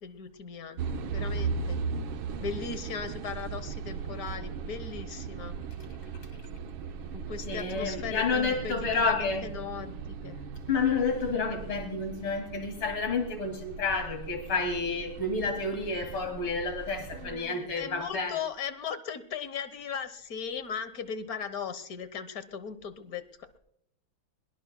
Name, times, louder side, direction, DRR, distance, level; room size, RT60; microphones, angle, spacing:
voice 1, 0.0-1.8 2.4-5.6 7.1-10.4 17.1-23.6, left 6 dB, 55° left, 1.4 m, -38 dB
sound 1, 0.8-17.4, right 5 dB, 85° right, 1.7 m, -38 dB
voice 2, 7.5-9.5 10.7-18.4, left 4 dB, 85° left, 3.3 m, -30 dB
23.0 x 21.5 x 2.2 m
omnidirectional pair, 2.2 m